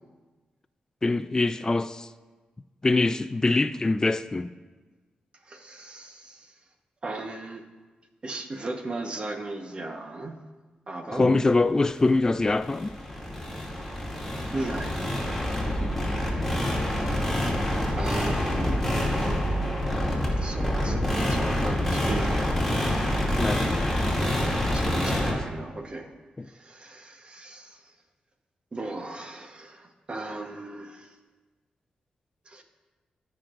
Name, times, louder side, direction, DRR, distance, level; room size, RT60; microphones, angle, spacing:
voice 1, 1.0-2.1 2.8-4.5 11.1-12.9 15.7-15.9 23.4-23.6, left 3 dB, 25° left, 0.3 m, -24 dB
voice 2, 5.4-6.5 7.0-7.6 8.2-10.3 10.9-11.4 14.5-15.0 16.9-17.3 18.0-19.4 20.4-22.7 24.7-26.1 26.4-27.9 28.7-31.2 32.5-32.6, right 2 dB, 35° right, 1.1 m, -36 dB
sound 1, 12.0-25.3, left 1 dB, ahead, 2.6 m, -27 dB
18.0 x 6.1 x 2.5 m
cardioid pair, 70°, 3 cm